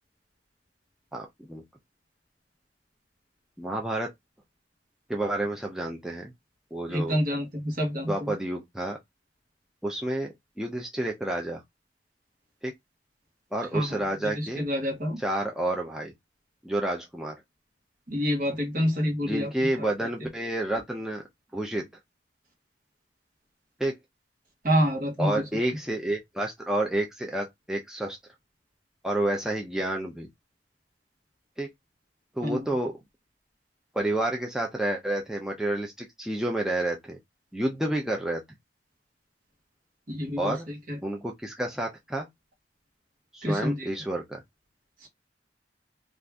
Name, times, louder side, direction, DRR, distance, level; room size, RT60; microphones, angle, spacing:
voice 1, 1.1-1.6 3.6-4.1 5.1-6.3 6.7-7.1 8.0-9.0 9.8-11.6 12.6-12.7 13.5-14.6 15.2-16.1 16.6-17.4 19.2-21.2 21.5-21.8 23.8-23.9 25.2-28.2 29.0-30.3 31.6-31.7 32.4-33.0 33.9-37.2 37.5-38.4 40.4-40.7 41.0-42.3 43.3-44.4, right 1 dB, 5° right, 0.5 m, -29 dB
voice 2, 6.9-8.3 13.7-14.0 14.4-15.2 18.1-19.5 19.8-19.9 24.6-25.4 32.4-32.7 40.1-40.6 40.9-41.0 43.4-43.9 45.0-45.1, equal, 50° right, 1.3 m, -27 dB
2.7 x 2.5 x 3.4 m
head